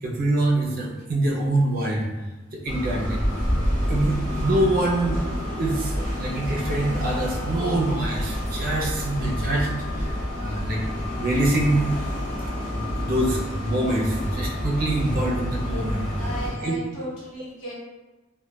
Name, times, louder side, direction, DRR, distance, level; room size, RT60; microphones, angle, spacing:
voice 1, 0.0-2.1 2.5-3.2 3.9-10.8 11.2-11.9 12.7-16.1 16.5-16.8, right 1 dB, 45° right, -2 dB, 0.6 m, -25 dB
sound 1, 2.7-16.5, equal, 35° left, 1.1 m, -28 dB
voice 2, 16.2-17.7, right 1 dB, 75° left, -7 dB, 1.1 m, -35 dB
3.0 x 2.2 x 2.3 m, 1.1 s
head